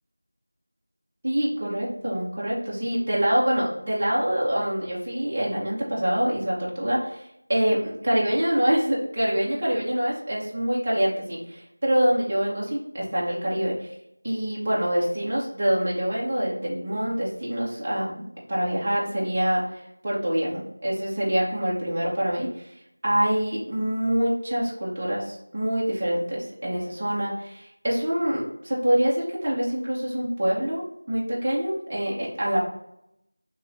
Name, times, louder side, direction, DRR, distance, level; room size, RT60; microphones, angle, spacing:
voice 1, 1.2-13.9 14.2-18.2 18.5-22.7 23.0-32.6, equal, 20° right, -6 dB, 0.5 m, -25 dB
3.0 x 2.4 x 3.0 m, 0.81 s
figure-of-eight pair, 180°, 0 cm